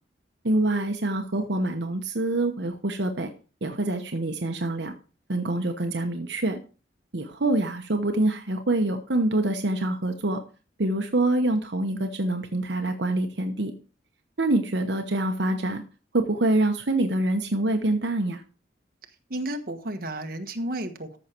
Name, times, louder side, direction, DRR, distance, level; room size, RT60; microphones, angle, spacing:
voice 1, 0.4-3.3 3.6-4.9 5.3-6.6 7.1-10.4 10.8-13.7 14.4-15.8 16.1-18.4, right 2 dB, 75° right, 1.1 m, -25 dB
voice 2, 19.3-21.2, right 1 dB, 55° right, 1.4 m, -32 dB
14.0 x 6.4 x 4.5 m
head